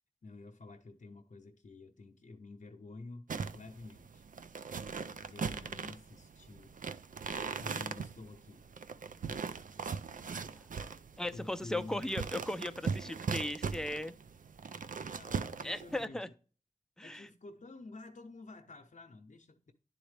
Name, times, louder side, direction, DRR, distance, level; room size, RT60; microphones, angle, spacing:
voice 1, 0.2-4.2 4.7-6.7 7.6-8.6 9.2-9.5 11.3-12.0 14.9-16.2 17.0-19.7, left 3 dB, 55° left, 0.7 m, -50 dB
sound 1, 3.3-16.1, right 5 dB, 60° right, 0.4 m, -40 dB
voice 2, 11.2-14.1 15.6-16.3 17.0-17.3, left 1 dB, 5° left, 0.5 m, -37 dB
10.0 x 4.0 x 3.3 m
cardioid pair, 45°, 15 cm